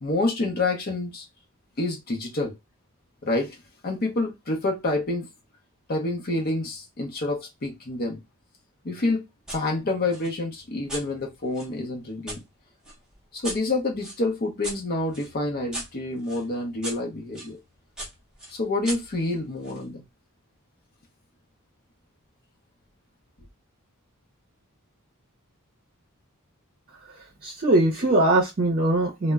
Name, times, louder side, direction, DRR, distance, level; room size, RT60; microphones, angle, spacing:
voice 1, 0.0-1.2 1.8-2.5 3.2-3.6 3.8-5.3 5.9-8.2 8.8-9.2 9.5-12.4 13.3-17.6 18.5-20.0, left 2 dB, 45° left, 0.6 m, -28 dB
sound 1, 9.5-9.6 10.1-12.4 12.8-17.5 18.0-19.8, right 1 dB, 5° right, 0.6 m, -39 dB
voice 2, 27.1-29.3, right 2 dB, 40° right, 0.6 m, -22 dB
2.1 x 2.0 x 3.4 m
head